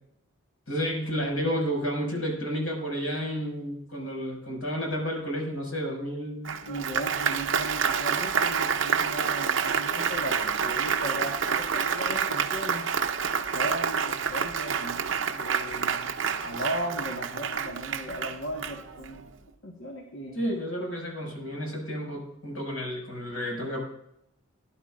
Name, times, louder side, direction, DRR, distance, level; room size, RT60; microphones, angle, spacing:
voice 1, 0.7-6.5 20.3-23.8, equal, 85° left, 0 dB, 5.8 m, -31 dB
Applause, 6.4-19.2, right 6 dB, 65° right, 0.7 m, -28 dB
voice 2, 6.7-12.8 13.5-15.1 15.4-16.1 16.4-19.2 19.6-20.4, equal, 65° left, 0 dB, 1.5 m, -37 dB
19.0 x 11.5 x 2.5 m, 0.79 s
head